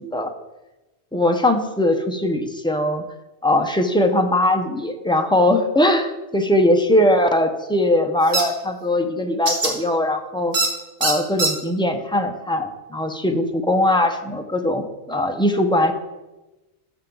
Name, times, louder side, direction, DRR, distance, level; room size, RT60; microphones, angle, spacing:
voice 1, 1.1-3.0 3.4-10.6 11.0-15.9, left 1 dB, 5° left, 4 dB, 0.7 m, -20 dB
sound 1, 8.3-8.4 9.5-9.7 10.5-10.7 11.0-11.5, right 3 dB, 80° right, 2.0 m, -20 dB
13.0 x 7.0 x 3.9 m, 1.1 s
omnidirectional pair, 1.1 m